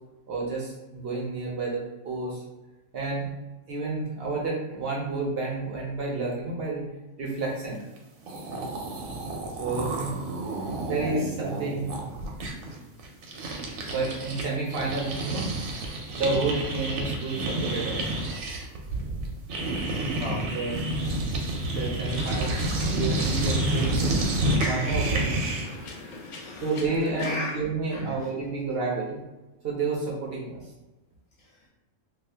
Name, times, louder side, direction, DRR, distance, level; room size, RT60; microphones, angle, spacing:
voice 1, 0.3-2.4 2.9-3.3 3.7-6.8 7.2-7.9 9.6-10.1 10.9-12.1 13.9-15.5 16.1-18.1 19.8-19.9 20.5-20.7 21.6-24.1 24.6-25.5 26.6-29.2 29.6-30.7, right 3 dB, 60° right, -2 dB, 0.7 m, -30 dB
sound 1, 8.0-8.1 8.2-14.4 14.7-25.8, right 1 dB, 90° right, 1.0 m, -29 dB
sound 2, 22.1-27.4, left 3 dB, 70° left, 0.4 m, -41 dB
voice 2, 26.0-26.8 27.2-27.6 27.9-28.3 31.4-31.7, left 2 dB, 90° left, -4 dB, 1.1 m, -37 dB
2.7 x 2.4 x 3.3 m, 1.1 s
omnidirectional pair, 1.4 m